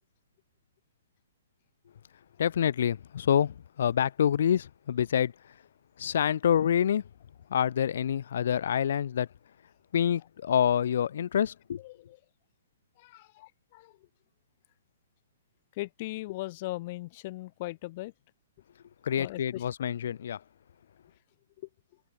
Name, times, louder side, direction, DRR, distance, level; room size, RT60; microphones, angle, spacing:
voice 1, 2.4-5.3 6.0-7.0 7.5-9.3 9.9-11.8 19.0-20.4, left 9 dB, 55° left, 0.6 m, -27 dB
voice 2, 11.8-12.2 13.0-14.1 15.7-18.1 19.2-19.7, left 19 dB, 30° left, 3.5 m, -39 dB
hypercardioid pair, 170°, 0 cm